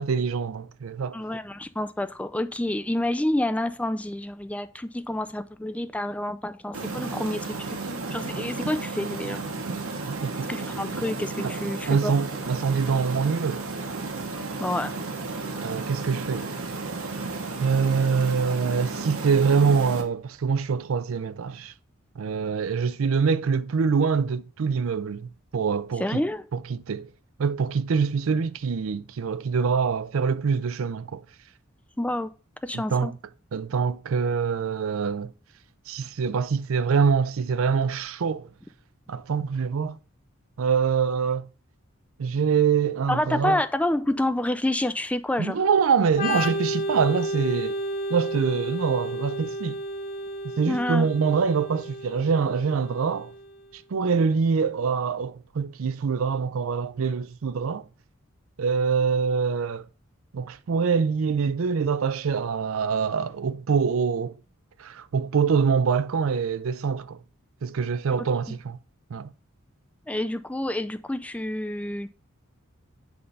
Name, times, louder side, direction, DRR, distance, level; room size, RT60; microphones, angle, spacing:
voice 1, 0.0-1.2 10.1-10.5 11.9-13.6 15.6-16.5 17.6-21.7 22.2-26.2 26.5-27.1 27.4-31.2 32.7-33.2 33.5-35.3 35.9-38.5 39.1-40.0 40.6-41.5 42.2-43.6 45.4-47.8 48.1-49.8 50.6-53.3 53.7-57.8 58.6-59.9 60.3-64.4 64.8-67.2 67.6-68.8 69.1-69.3, right 5 dB, 70° right, 0.4 m, -25 dB
voice 2, 1.1-9.4 10.5-12.1 14.6-14.9 26.0-26.5 32.0-32.3 32.6-33.1 43.1-45.6 50.7-51.1 68.2-68.6 70.1-72.1, left 1 dB, 5° left, 0.4 m, -28 dB
sound 1, 6.7-20.0, right 3 dB, 90° right, 1.3 m, -33 dB
Organ, 46.1-53.6, equal, 40° left, 2.1 m, -32 dB
7.9 x 3.3 x 5.4 m
head